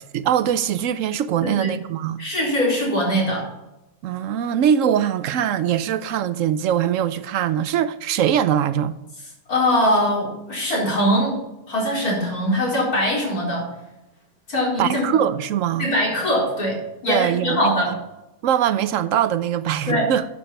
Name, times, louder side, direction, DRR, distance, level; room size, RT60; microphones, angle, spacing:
voice 1, 0.1-2.2 4.0-9.0 14.8-15.9 17.1-17.9 18.4-20.3, right 9 dB, 65° right, 0.9 m, -22 dB
voice 2, 2.2-3.5 9.5-11.4 11.7-13.7 14.5-15.1 15.8-18.0 19.9-20.1, equal, 85° left, 4.7 m, -22 dB
10.5 x 7.2 x 5.8 m
omnidirectional pair, 1.6 m